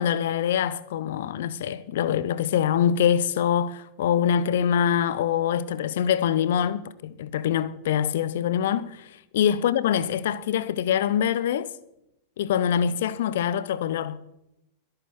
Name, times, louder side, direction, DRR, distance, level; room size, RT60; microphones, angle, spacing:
voice 1, 0.0-11.7 12.4-14.2, left 9 dB, 55° left, 0.7 m, -24 dB
22.5 x 8.8 x 4.4 m
figure-of-eight pair, 90°, 0 cm